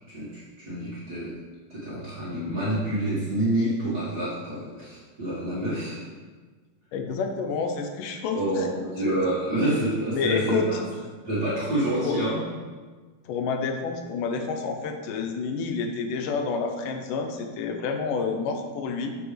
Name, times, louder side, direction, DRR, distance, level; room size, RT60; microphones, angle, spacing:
voice 1, 0.1-1.4 1.7-6.0 8.3-10.9 11.2-12.4, right 1 dB, 40° right, -9 dB, 1.8 m, -27 dB
voice 2, 6.9-9.2 10.1-10.7 12.0-12.2 13.3-19.1, left 5 dB, 85° left, 5 dB, 2.3 m, -29 dB
8.3 x 7.1 x 3.4 m, 1.4 s
omnidirectional pair, 3.7 m